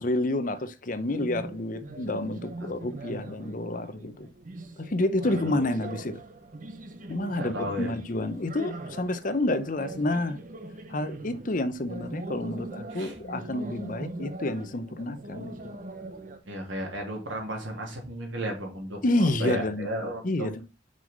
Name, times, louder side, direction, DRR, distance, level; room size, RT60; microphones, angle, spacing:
voice 1, 0.0-4.3 4.8-6.2 7.1-10.4 10.9-15.8 19.0-19.9 20.2-20.6, left 1 dB, 40° left, 0.7 m, -29 dB
sound 1, 1.1-16.4, right 2 dB, 40° right, 0.9 m, -41 dB
voice 2, 5.2-5.5 7.3-7.9 12.9-13.2 16.5-20.6, equal, 75° right, 3.1 m, -34 dB
6.3 x 5.5 x 5.3 m
head